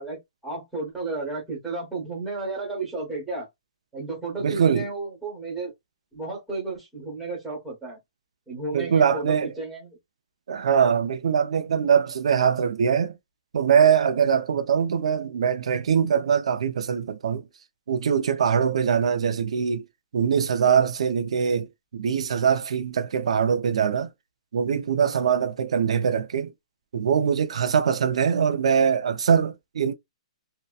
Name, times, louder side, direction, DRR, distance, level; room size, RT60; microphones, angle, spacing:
voice 1, 0.0-3.5 3.9-5.7 6.1-8.0 8.5-10.0, right 3 dB, ahead, 1.1 m, -33 dB
voice 2, 4.4-4.8 8.7-9.5 10.5-13.1 13.5-17.4 17.9-19.8 20.1-21.7 21.9-24.1 24.5-26.5 26.9-29.9, right 7 dB, 65° right, 0.5 m, -22 dB
2.7 x 2.1 x 2.3 m
hypercardioid pair, 170°, 4 cm